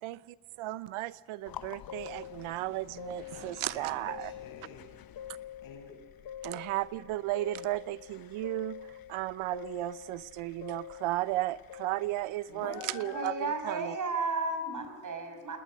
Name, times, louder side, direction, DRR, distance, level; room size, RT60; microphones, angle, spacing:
voice 1, 0.0-4.3 6.4-8.8 9.1-13.3 13.7-13.9, right 17 dB, 85° right, 0.9 m, -34 dB
sound 1, 1.4-13.8, left 10 dB, 45° left, 0.8 m, -46 dB
voice 2, 3.3-4.9 5.2-5.9 12.5-13.4, left 5 dB, 75° left, 6.5 m, -47 dB
voice 3, 13.0-15.6, right 3 dB, 40° right, 6.2 m, -33 dB
28.5 x 20.0 x 6.4 m
cardioid pair, 110°, 48 cm